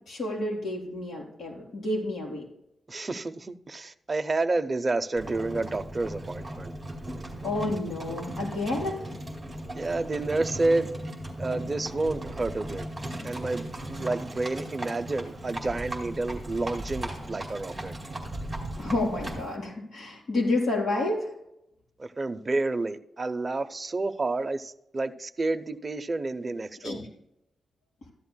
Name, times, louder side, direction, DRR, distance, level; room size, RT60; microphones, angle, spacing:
voice 1, 0.1-2.4 7.4-9.0 18.8-21.3 26.8-27.1, left 2 dB, 60° left, 4.2 m, -30 dB
voice 2, 2.9-6.7 9.8-10.9 11.4-12.9 13.2-17.9 22.0-27.0, right 2 dB, 25° right, 0.5 m, -30 dB
Livestock farm animals working animals, 5.2-19.5, right 1 dB, 10° right, 2.3 m, -37 dB
14.0 x 11.0 x 2.2 m
wide cardioid pair, 160°, 0 cm